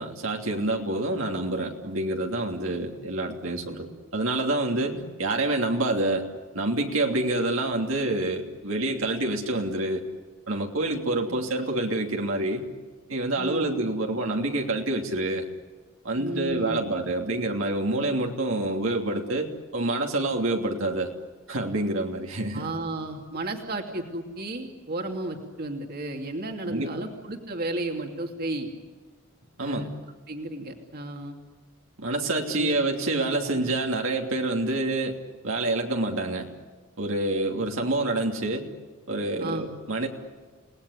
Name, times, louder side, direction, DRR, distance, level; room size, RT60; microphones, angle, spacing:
voice 1, 0.0-6.3 6.5-10.0 10.5-12.6 13.1-15.5 16.0-21.1 21.5-22.7 26.7-26.9 29.6-29.9 32.0-35.2 35.4-36.5 37.0-38.7 39.1-40.1, right 2 dB, 70° right, 1 dB, 2.9 m, -27 dB
voice 2, 13.4-13.7 16.2-16.8 22.5-28.7 29.6-29.9 30.3-31.4 32.5-32.8 33.5-33.6 39.4-39.7, right 2 dB, 50° right, 3 dB, 2.8 m, -33 dB
29.5 x 19.5 x 9.8 m, 1.4 s
head